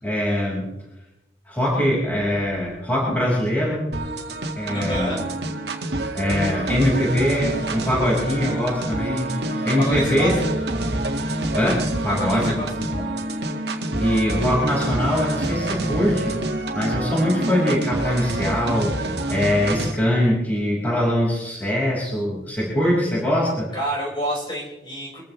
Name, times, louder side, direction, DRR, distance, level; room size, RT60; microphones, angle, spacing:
voice 1, 0.0-0.7 1.5-3.9 4.6-5.2 6.1-9.3 9.6-10.3 11.5-12.6 12.9-13.0 14.0-16.3 16.7-23.7, equal, 10° left, -5 dB, 5.3 m, -22 dB
sound 1, 3.9-19.9, right 2 dB, 70° right, 1.8 m, -27 dB
voice 2, 4.7-5.2 9.8-10.3 12.2-12.7 23.7-25.2, right 1 dB, 25° left, -4 dB, 5.3 m, -28 dB
sound 2, 9.3-19.0, equal, 40° right, 2.4 m, -33 dB
24.5 x 15.0 x 3.3 m, 0.96 s
head